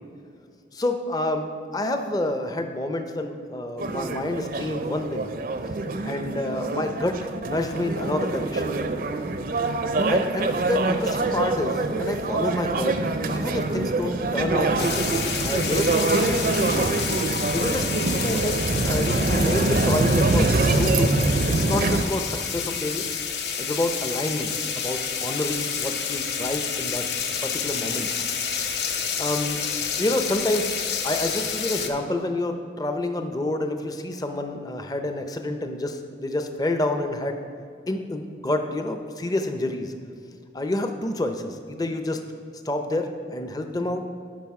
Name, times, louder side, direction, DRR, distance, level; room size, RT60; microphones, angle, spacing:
voice 1, 0.7-5.3 6.0-7.2 7.5-8.7 10.1-13.0 13.3-16.9 17.5-23.0 23.6-27.1 27.4-28.1 29.2-29.6 30.0-37.4 37.9-39.9 40.5-42.2 42.6-44.0, left 1 dB, 20° left, 6 dB, 0.5 m, -28 dB
sound 1, 3.8-22.0, right 3 dB, 50° right, 0.5 m, -24 dB
sound 2, 14.8-31.9, left 7 dB, 70° left, 0.7 m, -29 dB
11.5 x 5.4 x 4.7 m, 2.4 s
head